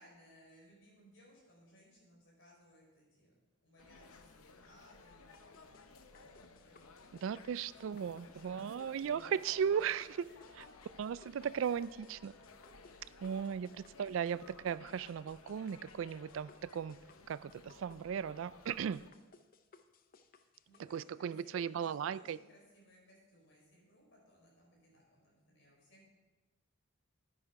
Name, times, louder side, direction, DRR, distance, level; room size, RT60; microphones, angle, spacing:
voice 1, 0.0-3.3 3.6-9.1 10.2-10.5 12.5-13.5 18.8-19.1 20.3-26.1, equal, 60° left, -2 dB, 4.3 m, -64 dB
sound 1, 3.8-19.1, left 4 dB, 85° left, 0.8 m, -58 dB
sound 2, 5.3-21.0, left 4 dB, 40° left, 0.6 m, -65 dB
voice 2, 7.1-10.3 11.0-12.3 13.2-17.0 17.3-19.0 20.8-22.4, right 7 dB, 65° right, 17 dB, 0.3 m, -37 dB
Chink clink, 11.4-20.1, equal, 5° left, 2.4 m, -74 dB
10.0 x 9.8 x 4.7 m, 1.2 s
head